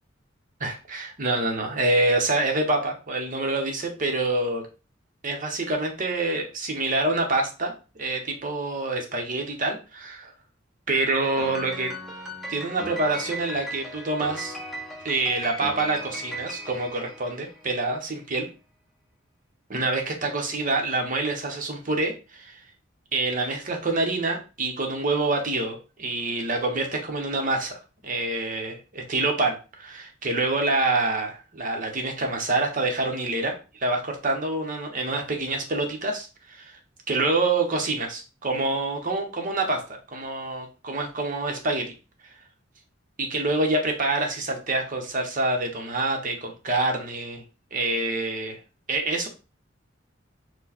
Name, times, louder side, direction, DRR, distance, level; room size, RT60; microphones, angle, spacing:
voice 1, 0.6-4.7 5.2-7.7 8.0-10.3 10.9-11.9 12.5-14.6 15.0-18.5 19.7-22.6 23.1-36.8 37.1-39.8 40.1-41.9 43.2-47.4 47.7-48.6 48.9-49.3, right 2 dB, 45° right, 3 dB, 1.0 m, -26 dB
Piano, 11.4-17.9, equal, ahead, 0.8 m, -37 dB
4.5 x 2.3 x 4.2 m, 0.32 s
head